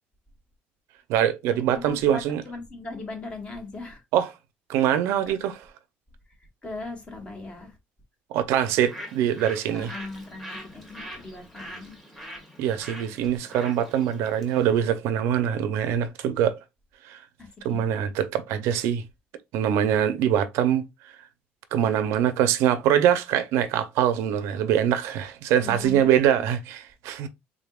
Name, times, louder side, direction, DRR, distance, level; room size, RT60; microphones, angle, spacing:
voice 1, 1.1-2.4 4.1-4.3 4.7-5.6 8.3-9.9 12.6-16.6 17.1-17.2 17.6-19.0 19.5-20.8 21.7-27.3, right 10 dB, 85° right, 0.5 m, -23 dB
voice 2, 1.7-4.0 5.3-5.4 6.6-7.7 9.7-12.0 17.4-17.8 25.6-26.2, left 3 dB, 25° left, 1.2 m, -39 dB
Bird, 8.6-14.8, equal, 5° left, 1.2 m, -43 dB
3.7 x 3.5 x 2.4 m
cardioid pair, 155°, 4 cm